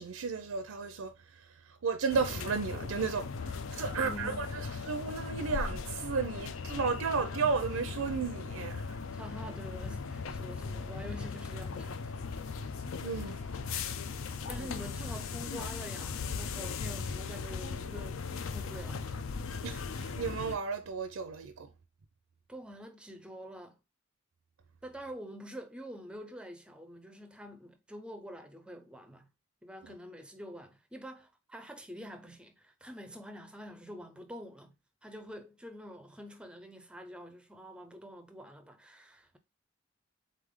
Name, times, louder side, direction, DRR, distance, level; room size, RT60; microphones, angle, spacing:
voice 1, 0.0-9.0 13.0-13.5 14.6-14.7 19.6-21.7 29.8-29.9, right 5 dB, 85° right, 0.5 m, -34 dB
sound 1, 2.1-20.6, left 5 dB, 75° left, 0.4 m, -38 dB
voice 2, 3.7-4.4 9.1-12.1 14.4-19.2 22.5-23.8 24.8-29.3 29.6-34.7 35.0-39.4, equal, 5° right, 0.4 m, -46 dB
3.8 x 3.3 x 3.6 m
head